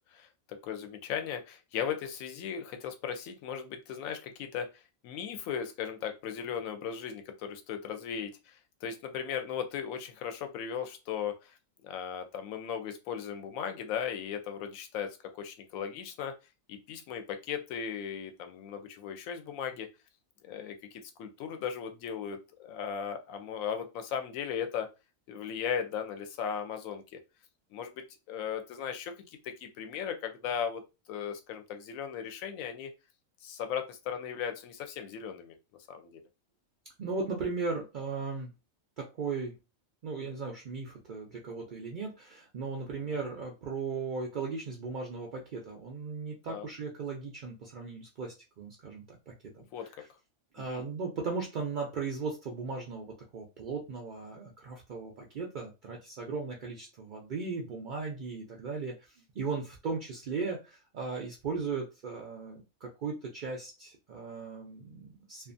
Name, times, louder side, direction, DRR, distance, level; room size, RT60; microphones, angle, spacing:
voice 1, 0.1-4.7 5.0-11.5 11.8-16.3 16.7-19.9 20.4-24.9 25.3-27.0 27.7-29.1 29.4-30.8 31.1-32.9 33.4-35.5 35.9-36.2 43.1-43.2 46.5-46.7 49.7-49.9 50.7-50.9, left 8 dB, 75° left, 7 dB, 1.0 m, -37 dB
voice 2, 37.0-38.5 39.0-39.5 40.0-49.6 50.5-65.5, right 4 dB, 70° right, 0 dB, 0.4 m, -37 dB
2.4 x 2.4 x 2.5 m, 0.28 s
omnidirectional pair, 1.5 m